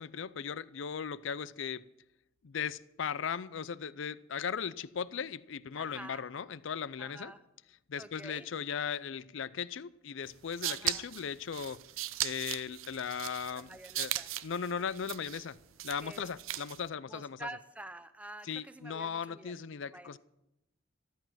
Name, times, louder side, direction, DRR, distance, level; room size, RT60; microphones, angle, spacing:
voice 1, 0.0-1.8 2.4-7.3 7.9-11.8 12.2-14.1 14.4-15.6 15.8-17.5 18.4-20.2, left 7 dB, 70° left, 0.5 m, -37 dB
voice 2, 5.7-6.2 7.0-7.4 8.0-8.5 10.6-11.0 13.5-14.3 16.0-16.2 17.1-19.7 19.9-20.2, right 1 dB, 5° right, 0.6 m, -47 dB
sound 1, 10.3-16.9, right 14 dB, 80° right, 0.6 m, -38 dB
13.5 x 13.0 x 5.8 m
head